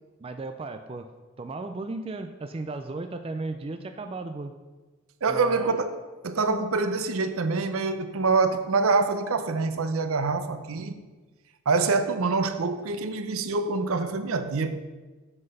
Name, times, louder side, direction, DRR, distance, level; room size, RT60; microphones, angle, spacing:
voice 1, 0.2-1.1 1.4-4.5 5.3-5.8, right 3 dB, 25° right, 0.3 m, -35 dB
voice 2, 5.2-6.0 6.2-11.0 11.7-14.8, right 4 dB, 75° right, 0.6 m, -25 dB
7.7 x 6.0 x 5.4 m
head